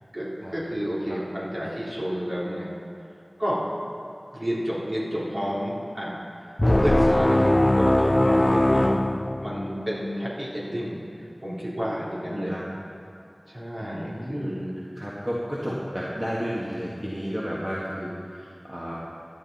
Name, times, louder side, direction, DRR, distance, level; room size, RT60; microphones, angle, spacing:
voice 1, 0.1-2.8 3.4-3.6 4.3-6.2 6.8-9.1 9.4-11.0 11.4-12.6 13.5-14.8, equal, 50° right, -7 dB, 3.6 m, -30 dB
sound 1, 6.6-9.9, left 1 dB, 35° left, 0.3 m, -20 dB
voice 2, 12.3-12.6 13.8-14.6 15.0-19.0, equal, 25° right, -6 dB, 1.8 m, -32 dB
16.0 x 11.0 x 4.2 m, 2.6 s
wide cardioid pair, 45°, 0 cm